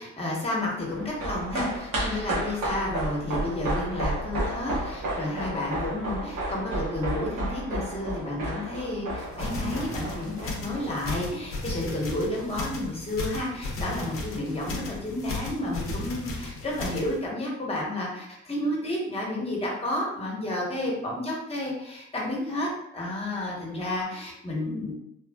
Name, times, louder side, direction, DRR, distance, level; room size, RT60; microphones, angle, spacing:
voice 1, 0.0-22.7 22.9-25.0, left 1 dB, 20° left, -3 dB, 1.0 m, -31 dB
sound 1, 0.9-11.5 11.7-11.8, right 1 dB, 90° right, 1.1 m, -32 dB
sound 2, 9.2-17.2, left 2 dB, 45° left, 0.7 m, -35 dB
3.2 x 2.3 x 2.2 m, 0.79 s
cardioid pair, 90°, 30 cm